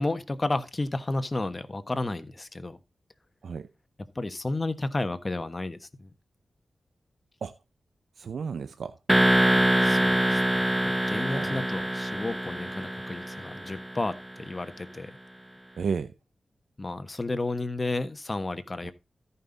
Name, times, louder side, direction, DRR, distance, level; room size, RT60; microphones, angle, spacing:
voice 1, 0.0-2.8 4.1-6.1 9.8-15.1 16.8-18.9, left 2 dB, 30° left, 1.3 m, -32 dB
voice 2, 8.2-9.0 11.3-11.6 15.8-16.1 18.8-18.9, right 5 dB, 80° right, 0.6 m, -33 dB
sound 1, 9.1-14.0, right 1 dB, 10° right, 0.8 m, -25 dB
14.0 x 5.6 x 3.9 m
cardioid pair, 55°, 0 cm